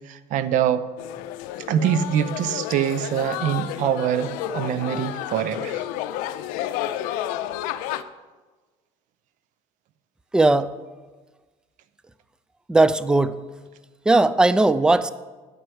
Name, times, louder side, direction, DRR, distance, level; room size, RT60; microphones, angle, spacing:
voice 1, 0.1-0.8 1.7-5.8, right 9 dB, 65° right, 13 dB, 0.6 m, -24 dB
sound 1, 1.0-8.0, left 12 dB, 80° left, 0.5 m, -31 dB
voice 2, 10.3-10.7 12.7-13.4 14.1-15.1, right 2 dB, 5° right, 15 dB, 0.4 m, -18 dB
9.8 x 4.5 x 7.7 m, 1.3 s
supercardioid pair, 100°, 14 cm